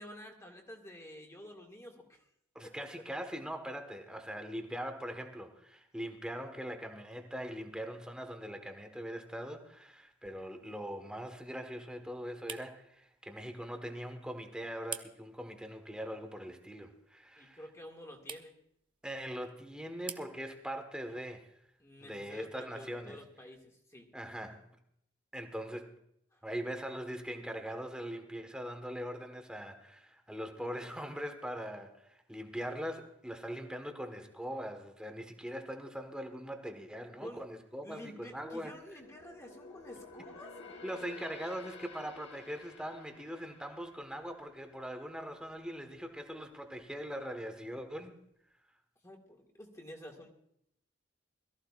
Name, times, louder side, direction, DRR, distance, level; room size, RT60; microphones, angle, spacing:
voice 1, 0.0-2.2 2.6-2.7 17.4-18.6 21.8-24.1 26.3-26.4 37.2-37.4 37.8-40.5 49.0-50.3, equal, 15° left, 1 dB, 2.0 m, -49 dB
voice 2, 2.5-17.6 19.0-21.5 22.0-23.2 24.1-24.7 25.3-26.0 26.4-39.0 40.8-48.2, equal, 5° right, 5 dB, 1.3 m, -41 dB
sound 1, 8.9-23.7, right 7 dB, 25° right, 0.7 m, -53 dB
sound 2, 38.2-45.6 45.9-46.2 46.7-47.4 47.8-47.9, left 4 dB, 65° left, 1.4 m, -53 dB
22.0 x 14.0 x 2.4 m, 0.73 s
head